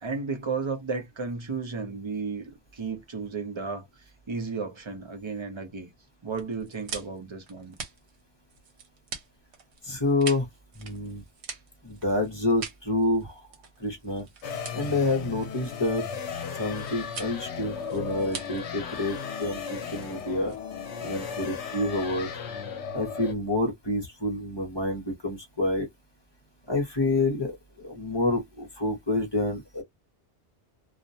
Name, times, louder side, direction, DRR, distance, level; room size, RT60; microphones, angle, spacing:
voice 1, 0.0-3.9 4.3-5.9 6.2-7.7, right 4 dB, 35° right, 0.5 m, -33 dB
sound 1, 6.3-21.0, right 5 dB, 70° right, 1.0 m, -43 dB
voice 2, 9.8-10.5 10.8-11.2 11.8-13.4 13.8-14.2 14.7-16.0 16.6-20.5 21.0-22.3 22.9-25.9 26.7-27.5 27.8-29.8, left 2 dB, 25° left, 0.7 m, -28 dB
sound 2, 14.4-23.3, left 6 dB, 75° left, 0.9 m, -36 dB
2.4 x 2.1 x 2.6 m
omnidirectional pair, 1.2 m